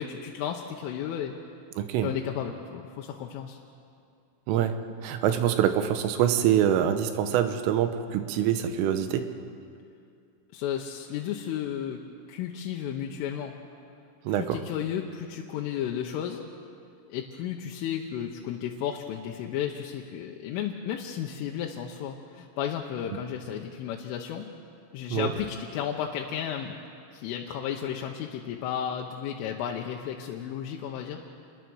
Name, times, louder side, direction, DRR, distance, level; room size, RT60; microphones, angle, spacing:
voice 1, 0.0-1.3 2.0-3.6 10.5-12.0 12.3-13.6 14.3-16.5 17.1-24.5 24.9-26.7 27.1-31.2, left 9 dB, 85° left, 0 dB, 3.5 m, -33 dB
voice 2, 1.8-2.1 4.5-4.8 5.0-9.3 14.3-14.6 25.1-25.3, right 10 dB, 80° right, 8 dB, 3.6 m, -25 dB
28.5 x 21.5 x 6.3 m, 2.4 s
omnidirectional pair, 5.7 m